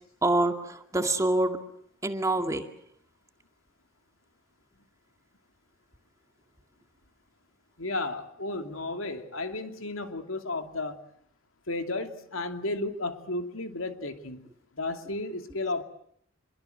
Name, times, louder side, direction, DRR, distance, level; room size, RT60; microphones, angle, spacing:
voice 1, 0.2-1.6 2.0-2.6, right 2 dB, 15° right, 6 dB, 2.2 m, -26 dB
voice 2, 7.8-11.0 11.7-14.5 14.8-15.8, left 2 dB, 75° left, 7 dB, 2.6 m, -33 dB
27.0 x 23.5 x 7.8 m, 0.68 s
head